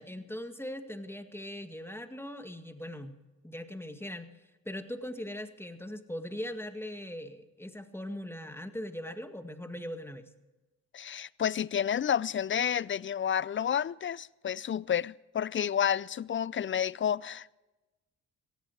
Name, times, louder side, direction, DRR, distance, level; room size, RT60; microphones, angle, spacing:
voice 1, 0.0-3.2 3.4-4.3 4.7-10.3, left 1 dB, 5° left, 1.9 m, -40 dB
voice 2, 10.9-17.5, left 9 dB, 35° left, 0.4 m, -30 dB
17.5 x 15.0 x 4.7 m
hypercardioid pair, 45°, 38 cm